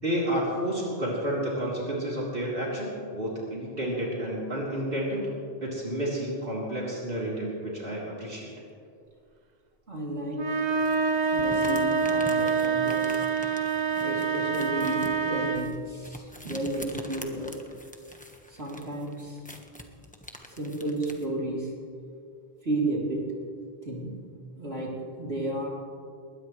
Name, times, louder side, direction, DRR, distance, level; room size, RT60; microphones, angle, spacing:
voice 1, 0.0-5.3 5.6-8.5, right 1 dB, 65° right, -6 dB, 3.8 m, -30 dB
voice 2, 9.9-10.5 11.3-13.2 14.0-17.5 18.6-19.4 20.5-21.7 22.6-23.4 23.8-24.2 24.6-25.7, right 1 dB, 80° right, -4 dB, 3.9 m, -32 dB
sound 1, 10.3-15.8, right 5 dB, 45° right, 0.9 m, -26 dB
sound 2, 10.8-21.3, left 1 dB, 10° left, 1.3 m, -45 dB
21.0 x 19.5 x 3.3 m, 2.3 s
omnidirectional pair, 1.0 m